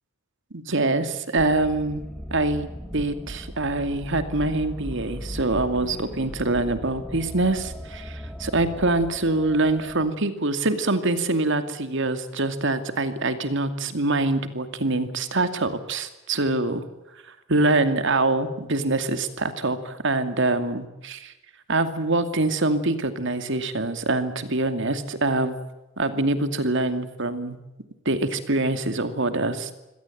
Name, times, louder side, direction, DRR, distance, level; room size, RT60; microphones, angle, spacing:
voice 1, 0.5-2.0 2.3-2.7 2.9-16.8 17.5-21.3 21.7-25.6 26.0-27.6 28.0-29.8, right 2 dB, 60° right, 9 dB, 2.5 m, -24 dB
sound 1, 1.4-10.1, equal, 5° left, 1.9 m, -38 dB
25.5 x 17.5 x 9.2 m, 1.0 s
head